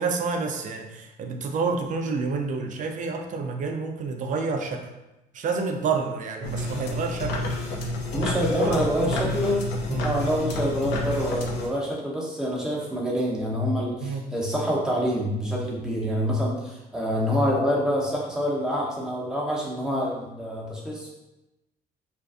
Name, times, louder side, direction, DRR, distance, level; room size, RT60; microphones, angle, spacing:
voice 1, 0.0-4.9 5.3-7.9 8.6-9.3 9.9-10.1 14.0-14.3, right 4 dB, 45° right, 4 dB, 0.4 m, -29 dB
sound 1, 6.4-11.7, left 1 dB, 70° left, 0.5 m, -29 dB
voice 2, 8.1-9.6 10.0-21.1, equal, 5° right, -4 dB, 0.8 m, -26 dB
2.5 x 2.2 x 2.4 m, 0.98 s
hypercardioid pair, 65°, 19 cm